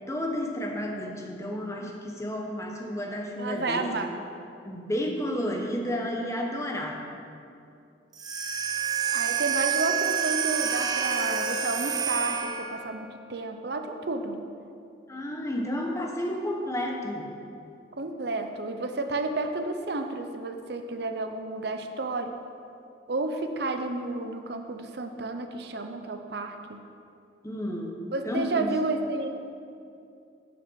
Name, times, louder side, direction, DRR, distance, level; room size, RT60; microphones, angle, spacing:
voice 1, 0.1-3.9 4.6-7.0 15.1-17.3 27.4-28.0 28.2-28.7, equal, 15° left, 1 dB, 1.1 m, -31 dB
voice 2, 3.4-4.1 9.1-14.4 18.0-22.3 23.1-26.8 28.1-29.3, right 2 dB, 60° right, 6 dB, 0.7 m, -31 dB
sound 1, 8.1-12.9, right 7 dB, 20° right, 0.6 m, -28 dB
8.5 x 6.7 x 6.4 m, 2.5 s
head